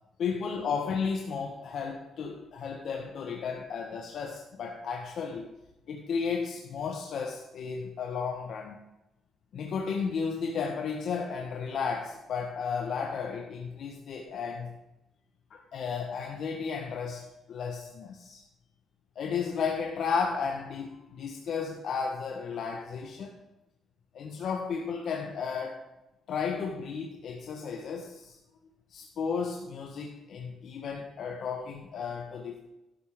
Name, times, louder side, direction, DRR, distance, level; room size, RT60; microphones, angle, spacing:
voice 1, 0.2-5.6 5.9-8.8 9.5-14.7 15.5-18.4 19.1-23.4 24.1-25.8 26.3-28.4 28.9-32.6, left 5 dB, 65° left, 1 dB, 1.5 m, -33 dB
12.5 x 11.5 x 3.8 m, 0.94 s
cardioid pair, 90°, 0 cm